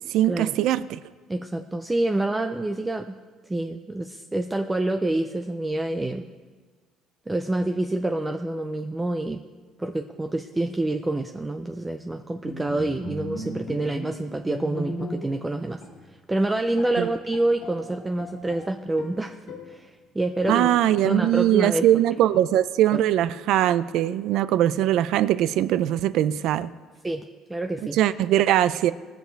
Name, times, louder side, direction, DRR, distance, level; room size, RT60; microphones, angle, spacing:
voice 1, 0.1-1.0 17.0-17.1 20.5-26.7 27.9-28.9, right 12 dB, 70° right, 15 dB, 0.4 m, -21 dB
voice 2, 1.3-3.1 3.4-6.3 7.3-9.4 9.8-15.8 16.3-19.3 19.7-20.7 21.0-21.9 22.9-23.0 27.0-27.2 27.5-28.0, right 2 dB, 10° right, 6 dB, 0.4 m, -27 dB
Bowed string instrument, 12.4-15.5 15.8-16.0 16.5-16.6 16.8-18.7 19.0-19.8 20.4-21.0, left 1 dB, 70° left, 1.9 m, -36 dB
19.5 x 6.8 x 4.6 m, 1.4 s
cardioid pair, 140°, 0 cm